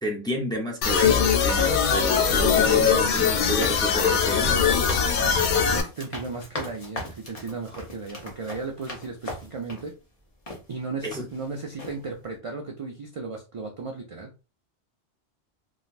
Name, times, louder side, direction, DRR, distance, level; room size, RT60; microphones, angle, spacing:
voice 1, 0.0-4.7 11.0-11.3, equal, 5° left, -1 dB, 0.5 m, -31 dB
sound 1, 0.8-5.8, left 7 dB, 75° left, 0.9 m, -21 dB
sound 2, 3.6-9.9 10.5-10.6 11.1-11.5 11.8-12.0, left 2 dB, 40° left, 0.7 m, -39 dB
voice 2, 5.1-9.9 10.7-14.3, right 4 dB, 60° right, 2 dB, 0.3 m, -35 dB
3.1 x 2.3 x 2.5 m, 0.31 s
omnidirectional pair, 1.2 m